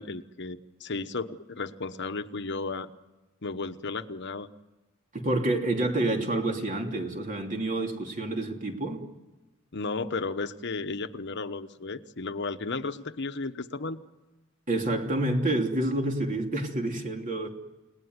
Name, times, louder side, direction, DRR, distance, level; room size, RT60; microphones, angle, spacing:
voice 1, 0.0-2.9 3.4-4.5 9.7-14.0, left 3 dB, 60° left, 1.1 m, -34 dB
voice 2, 5.1-9.0 14.7-17.5, right 2 dB, 40° right, 3.1 m, -28 dB
30.0 x 19.0 x 9.6 m
head